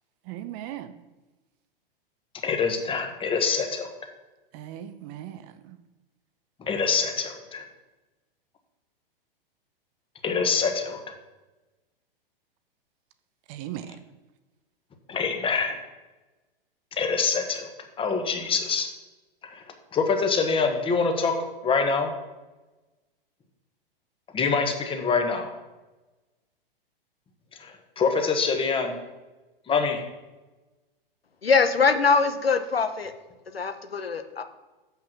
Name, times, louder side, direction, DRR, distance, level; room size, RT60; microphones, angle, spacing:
voice 1, 0.3-0.9 4.5-5.8 13.5-14.0, right 12 dB, 35° right, 0.6 m, -38 dB
voice 2, 2.4-3.9 6.6-7.6 10.2-11.0 15.1-15.8 16.9-17.7 18.0-18.9 19.4-19.6 19.9-21.3 21.6-22.1 24.3-25.5 27.6-29.0 29.7-30.0, left 5 dB, 20° left, 1.2 m, -25 dB
voice 3, 31.4-33.1 33.5-34.4, left 5 dB, 90° left, 0.9 m, -22 dB
7.1 x 5.7 x 6.1 m
figure-of-eight pair, 105°, 29 cm